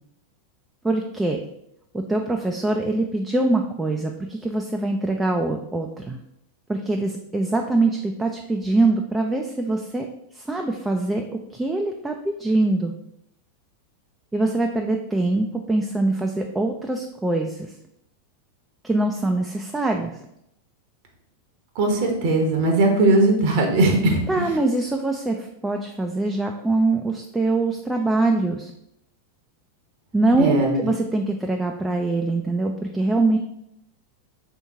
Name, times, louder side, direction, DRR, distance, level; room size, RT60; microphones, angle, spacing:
voice 1, 0.8-1.4 1.9-6.2 6.7-10.1 10.3-12.9 14.3-17.7 18.8-20.2 24.3-28.7 30.1-33.4, right 2 dB, 10° right, 2 dB, 0.3 m, -23 dB
voice 2, 21.8-24.5 30.4-30.9, right 2 dB, 50° right, 2 dB, 0.8 m, -19 dB
3.5 x 2.8 x 4.6 m, 0.79 s
figure-of-eight pair, 90°, 0 cm